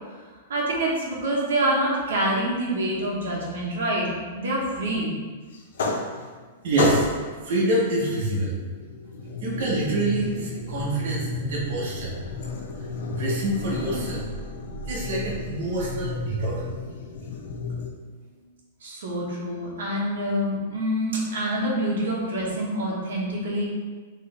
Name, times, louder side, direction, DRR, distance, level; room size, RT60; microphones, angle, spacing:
voice 1, 0.5-5.2 18.8-23.6, right 1 dB, 90° right, -4 dB, 1.2 m, -26 dB
sound 1, 5.5-6.5 6.8-7.4 8.5-17.9, left 3 dB, 60° left, 0.6 m, -32 dB
voice 2, 6.6-7.1 7.4-8.6 9.4-12.2 13.1-14.2 14.9-16.7, right 2 dB, 50° right, -6 dB, 1.1 m, -26 dB
4.1 x 3.2 x 3.4 m, 1.4 s
supercardioid pair, 180°, 0 cm